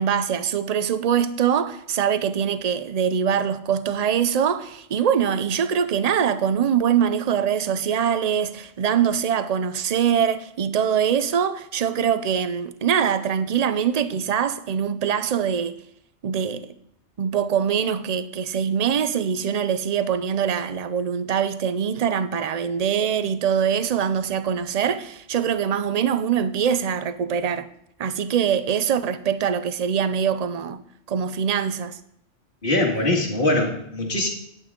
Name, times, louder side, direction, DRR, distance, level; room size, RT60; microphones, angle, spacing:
voice 1, 0.0-15.8 16.2-16.7 17.2-27.7 28.0-32.0, right 8 dB, 45° right, 0.5 m, -23 dB
voice 2, 32.6-34.3, left 2 dB, 45° left, 2.1 m, -22 dB
11.0 x 9.1 x 3.7 m
omnidirectional pair, 1.2 m